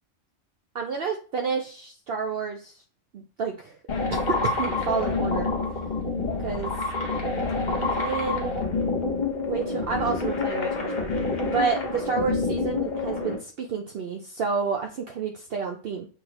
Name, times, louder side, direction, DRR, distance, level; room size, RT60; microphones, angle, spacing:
voice 1, 0.7-2.7 3.1-3.7 4.3-5.5 6.4-6.7 7.7-8.5 9.4-16.1, right 5 dB, 65° right, 3 dB, 0.7 m, -30 dB
sound 1, 3.9-13.4, left 3 dB, 40° left, 1.0 m, -27 dB
6.3 x 2.8 x 3.0 m, 0.39 s
omnidirectional pair, 1.3 m